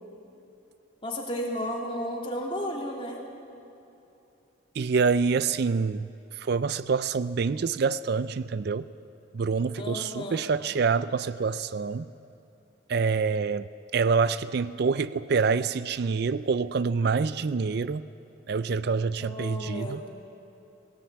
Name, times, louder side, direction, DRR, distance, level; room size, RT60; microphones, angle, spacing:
voice 1, 1.0-3.2 9.7-10.5 19.2-20.1, equal, 25° left, -1 dB, 2.9 m, -33 dB
voice 2, 4.8-6.1 6.3-8.9 9.3-12.1 12.9-13.7 13.9-18.1 18.5-20.0, right 5 dB, 55° right, 16 dB, 0.4 m, -26 dB
19.0 x 18.0 x 8.6 m, 2.8 s
head